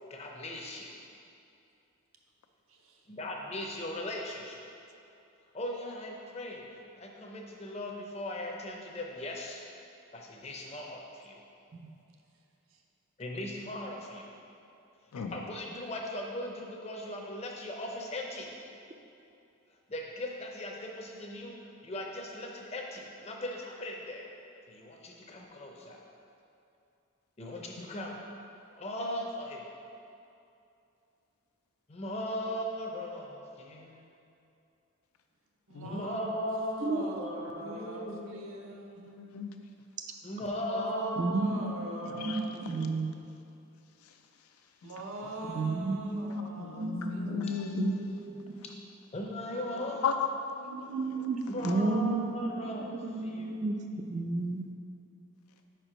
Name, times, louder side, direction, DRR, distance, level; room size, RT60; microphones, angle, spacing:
voice 1, 0.1-1.0 3.1-4.7 5.5-9.6 10.1-11.4 13.2-14.3 15.3-18.5 19.9-21.6 21.8-24.3 24.7-26.0 27.4-28.2 28.7-29.8 31.9-34.0 35.8-38.5 40.2-41.2 41.8-42.2 42.5-42.6 49.1-50.1 51.5-52.9 53.2-53.6, left 1 dB, 30° left, 0.6 m, -38 dB
voice 2, 2.7-3.0 35.7-39.1 40.7-43.0 44.8-47.7 49.7-50.0, right 1 dB, 70° right, 0.7 m, -41 dB
voice 3, 35.7-36.1 38.1-38.3 39.0-39.5 41.0-41.1 42.1-42.4 42.7-42.8 44.0-44.5 44.8-44.9 45.2-45.3 46.0-48.3 50.0-51.3 51.5-51.8, left 5 dB, 90° left, 0.5 m, -36 dB
voice 4, 36.8-37.3 40.0-40.1 41.2-41.9 42.1-43.2 45.5-46.5 46.7-47.5 47.7-48.6 50.7-54.7, right 3 dB, 35° right, 0.3 m, -32 dB
5.0 x 4.5 x 5.0 m
head